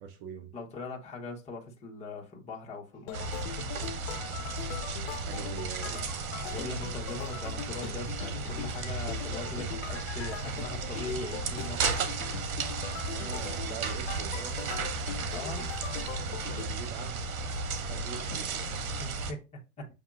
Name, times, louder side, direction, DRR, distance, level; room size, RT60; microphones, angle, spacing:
voice 1, 0.0-0.5 5.3-6.0 13.0-14.7 16.2-17.2 17.9-18.9, right 7 dB, 45° right, 0.8 m, -43 dB
voice 2, 0.5-3.3 5.8-6.0 6.4-11.9 15.3-15.7 18.3-18.4 19.0-19.4 19.8-19.9, left 3 dB, 15° left, 1.0 m, -40 dB
sound 1, 2.9-16.6, left 10 dB, 55° left, 0.7 m, -42 dB
sound 2, 3.1-19.3, right 3 dB, 85° right, 1.0 m, -34 dB
6.9 x 2.7 x 2.4 m
hypercardioid pair, 135°, 42 cm